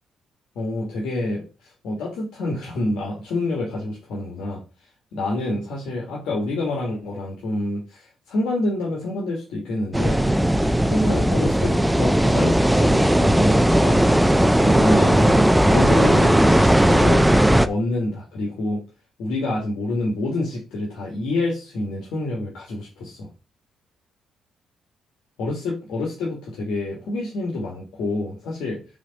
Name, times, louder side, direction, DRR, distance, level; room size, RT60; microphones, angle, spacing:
voice 1, 0.6-1.4 1.8-4.6 5.1-10.2 10.9-14.0 14.6-17.3 17.6-18.8 19.2-23.3 25.4-28.8, left 2 dB, 80° left, -3 dB, 2.0 m, -27 dB
sound 1, 9.9-17.7, right 1 dB, 5° right, 0.5 m, -17 dB
4.9 x 4.0 x 5.3 m, 0.32 s
cardioid pair, 95°, 0 cm